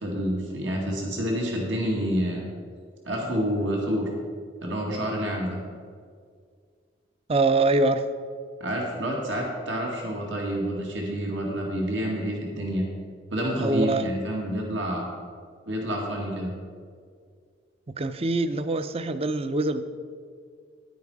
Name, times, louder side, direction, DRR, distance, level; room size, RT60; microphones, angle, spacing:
voice 1, 0.0-2.5 3.1-4.1 4.6-5.6 8.6-12.8 13.3-15.1 15.7-16.5, equal, 80° right, -1 dB, 2.0 m, -28 dB
voice 2, 7.3-8.0 13.6-14.1 18.0-19.8, right 2 dB, 30° right, 11 dB, 0.5 m, -24 dB
10.5 x 9.3 x 4.8 m, 2.1 s
head